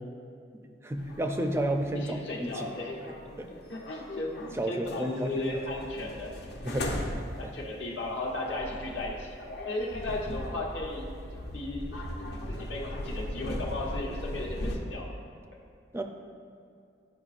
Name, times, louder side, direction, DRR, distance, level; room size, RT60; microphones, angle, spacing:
voice 1, 0.8-2.7 3.4-3.5 4.6-5.3 6.6-6.9 7.4-7.5 15.9-16.0, right 1 dB, 15° right, 5 dB, 0.4 m, -31 dB
sound 1, 1.0-14.8, left 1 dB, 55° left, 0.7 m, -38 dB
voice 2, 1.9-3.0 3.7-6.3 7.4-9.3 9.6-12.0 12.5-15.1, left 2 dB, 75° left, -3 dB, 1.1 m, -35 dB
11.5 x 5.0 x 2.4 m, 2.3 s
head